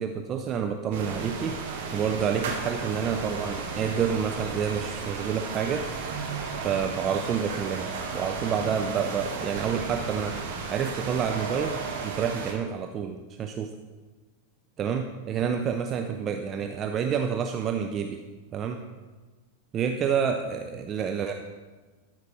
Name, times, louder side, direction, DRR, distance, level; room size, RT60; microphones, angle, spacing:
voice 1, 0.0-1.6 1.9-5.9 6.6-13.7 14.8-18.2 18.5-18.8 19.7-21.3, right 7 dB, 30° right, 5 dB, 0.4 m, -29 dB
sound 1, 0.9-12.5, right 4 dB, 55° right, 1.4 m, -34 dB
13.0 x 5.9 x 3.1 m, 1.3 s
figure-of-eight pair, 90°, 0 cm